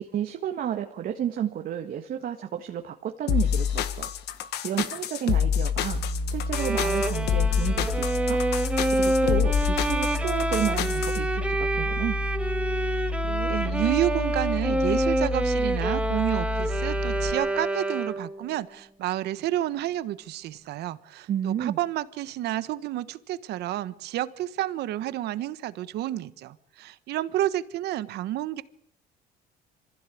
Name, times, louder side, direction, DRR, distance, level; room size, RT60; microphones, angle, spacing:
voice 1, 0.0-4.1 4.6-6.0 6.3-12.2 21.3-21.8, right 9 dB, 60° right, 4 dB, 1.8 m, -31 dB
sound 1, 3.3-11.2, left 9 dB, 80° left, 1.6 m, -27 dB
sound 2, 5.9-17.3, left 1 dB, 25° left, 4.9 m, -30 dB
Bowed string instrument, 6.5-18.4, right 1 dB, 5° right, 1.6 m, -28 dB
voice 2, 12.9-28.6, right 14 dB, 75° right, 15 dB, 1.2 m, -30 dB
24.5 x 15.5 x 8.5 m, 0.73 s
cardioid pair, 110°, 17 cm